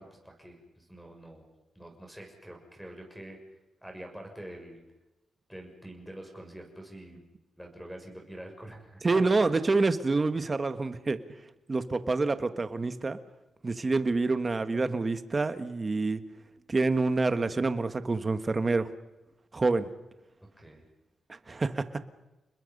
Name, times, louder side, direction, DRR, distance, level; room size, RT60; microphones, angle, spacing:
voice 1, 0.0-1.5 1.7-3.4 3.8-4.8 5.5-7.2 7.6-9.5 20.6-20.8, right 1 dB, ahead, 0 dB, 6.5 m, -46 dB
voice 2, 9.0-11.2 11.7-13.2 13.6-16.2 16.7-18.9 19.5-19.9 21.5-21.8, right 3 dB, 30° right, 10 dB, 1.5 m, -27 dB
30.0 x 21.0 x 5.4 m, 1.0 s
cardioid pair, 95°, 0 cm